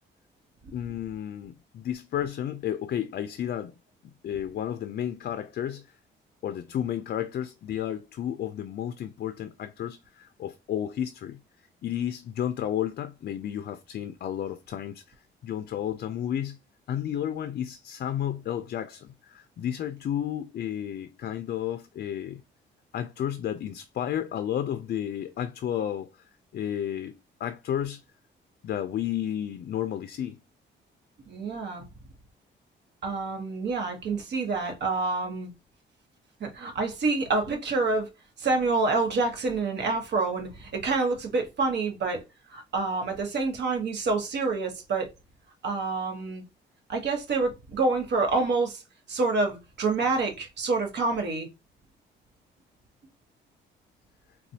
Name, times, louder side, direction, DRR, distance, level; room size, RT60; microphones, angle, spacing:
voice 1, 0.7-3.8 4.2-6.0 6.4-11.4 11.8-15.0 15.4-16.6 16.9-22.4 22.9-26.2 26.5-28.0 28.6-30.4, left 10 dB, 50° left, 0.4 m, -32 dB
voice 2, 31.3-31.8 33.0-35.5 36.4-38.1 38.4-42.2 42.5-45.1 45.6-46.4 46.9-48.8 49.1-51.5, right 3 dB, 60° right, 1.1 m, -27 dB
4.1 x 2.3 x 2.7 m
cardioid pair, 90°, 20 cm